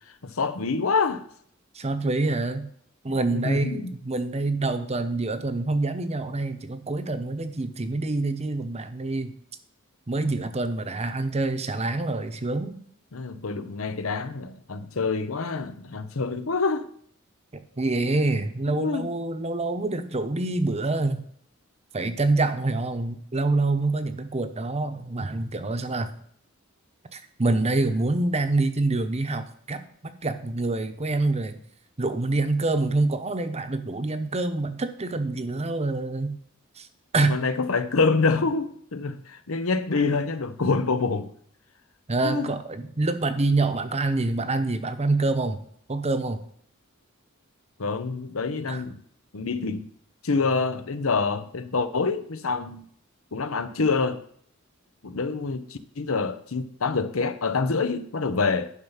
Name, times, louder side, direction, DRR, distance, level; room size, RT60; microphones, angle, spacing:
voice 1, 0.2-1.2 3.1-3.9 10.2-10.3 13.1-16.9 18.7-19.1 37.2-41.3 42.2-42.6 47.8-49.0 49.3-49.9 50.2-52.8 53.3-54.2 55.0-58.7, left 4 dB, 85° left, 0.8 m, -26 dB
voice 2, 1.7-2.7 3.0-9.3 10.1-12.8 17.8-21.2 21.9-26.1 27.1-31.6 32.0-36.4 36.8-36.9 37.1-37.4 42.1-45.6 45.9-46.4 48.7-48.8, right 2 dB, 30° right, 0.8 m, -26 dB
11.0 x 5.6 x 5.7 m
head